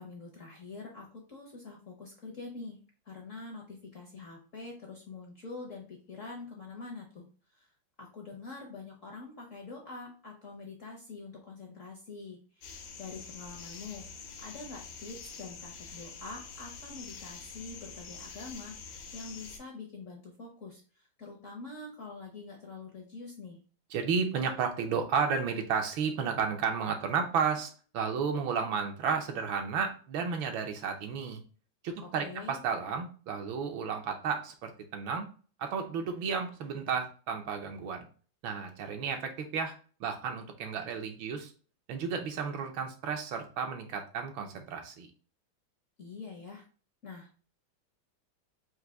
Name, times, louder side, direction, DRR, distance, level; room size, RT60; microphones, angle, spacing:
voice 1, 0.0-2.8 3.0-7.2 7.5-7.7 8.0-23.6 32.2-32.6 46.0-46.6 47.0-47.4, left 3 dB, 55° left, 0 dB, 0.9 m, -45 dB
sound 1, 12.6-19.6, left 5 dB, 75° left, 1.6 m, -46 dB
voice 2, 23.9-31.4 31.8-35.3 35.6-38.1 38.4-39.7 40.0-41.5 41.9-45.1, right 6 dB, 70° right, 5 dB, 1.4 m, -32 dB
4.7 x 2.7 x 3.8 m, 0.38 s
omnidirectional pair, 2.4 m